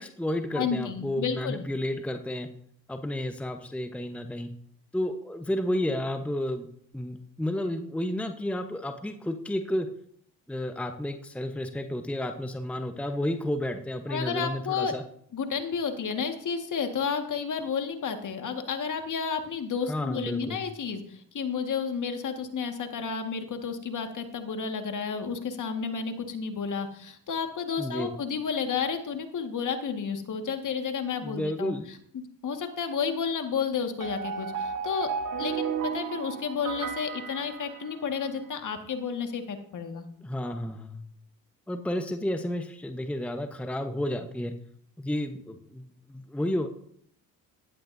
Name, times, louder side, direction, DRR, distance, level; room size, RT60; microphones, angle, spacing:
voice 1, 0.0-2.5 2.9-4.5 4.9-6.7 6.9-9.9 10.5-15.0 19.9-20.6 27.8-28.1 31.2-31.9 40.2-41.0 41.7-44.5 45.0-46.7, left 1 dB, 5° left, 6 dB, 1.0 m, -31 dB
voice 2, 0.5-1.7 14.1-14.9 15.3-31.7 32.1-35.1 35.4-40.1, left 6 dB, 45° left, 6 dB, 1.9 m, -31 dB
sound 1, 34.0-38.3, right 6 dB, 45° right, 1.5 m, -34 dB
15.5 x 11.5 x 2.7 m, 0.64 s
hypercardioid pair, 65°, 44 cm